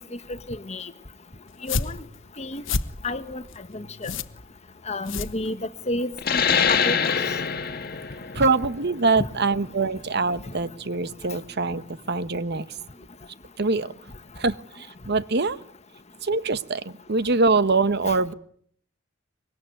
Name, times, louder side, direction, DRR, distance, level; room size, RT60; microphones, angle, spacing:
voice 1, 0.5-0.9 1.6-2.0 2.4-2.6 3.0-3.4 3.7-4.1 4.9-5.6 5.9-7.1 9.2-9.3, left 2 dB, 35° left, 11 dB, 1.4 m, -30 dB
sound 1, 1.5-6.0, left 4 dB, 65° left, 1.2 m, -31 dB
sound 2, 6.2-11.3, left 7 dB, 50° left, 1.7 m, -26 dB
voice 2, 8.3-12.6 13.6-13.9 14.4-14.5 15.1-15.6 16.2-16.8 17.1-18.3, right 3 dB, 55° right, 13 dB, 1.1 m, -23 dB
24.5 x 21.5 x 9.4 m, 0.63 s
head